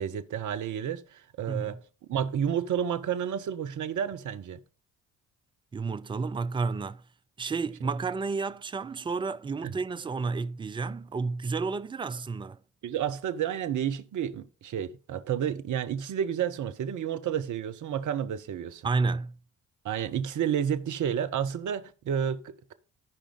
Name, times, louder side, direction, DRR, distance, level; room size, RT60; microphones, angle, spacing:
voice 1, 0.0-1.8 2.1-4.6 9.6-9.7 12.8-18.9 19.8-22.7, right 9 dB, 45° right, 0.8 m, -31 dB
voice 2, 1.5-1.8 5.7-7.0 7.4-12.6 18.8-19.4, right 4 dB, 15° right, 0.4 m, -31 dB
13.5 x 5.0 x 3.7 m
figure-of-eight pair, 40°, 41 cm